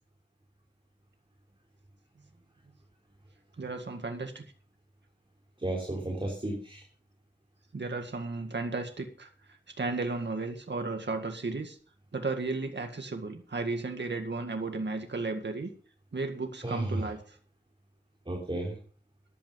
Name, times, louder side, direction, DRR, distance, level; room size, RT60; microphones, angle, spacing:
voice 1, 3.6-4.5 7.7-9.3 9.8-11.8 12.1-15.7 16.1-17.4, right 3 dB, 65° right, 5 dB, 1.9 m, -34 dB
voice 2, 5.6-6.9 16.6-17.1 18.3-18.8, right 1 dB, 25° right, 0 dB, 3.6 m, -33 dB
14.0 x 11.0 x 5.3 m, 0.43 s
wide cardioid pair, 75°, 19 cm